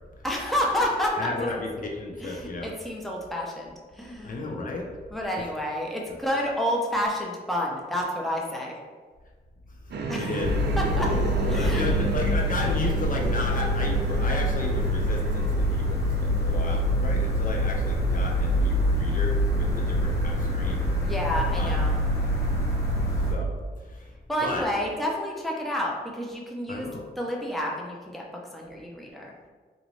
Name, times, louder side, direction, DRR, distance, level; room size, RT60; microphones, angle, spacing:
voice 1, 0.2-1.6 2.2-4.5 5.1-8.7 10.1-10.4 10.8-12.0 21.0-22.0 24.3-26.9 27.2-28.2 28.5-29.3, equal, ahead, -2 dB, 0.6 m, -29 dB
voice 2, 1.2-2.7 4.2-4.9 6.1-6.2 9.9-10.5 11.0-20.8 21.5-21.9 23.3-23.5 23.8-24.1 24.4-24.7 26.7-27.0, left 2 dB, 50° left, 0 dB, 0.6 m, -33 dB
sound 1, 9.9-16.9, right 3 dB, 75° right, 0.5 m, -34 dB
sound 2, 10.4-23.3, equal, 80° left, 1.1 m, -25 dB
3.9 x 2.6 x 3.1 m, 1.4 s
cardioid pair, 80°, 17 cm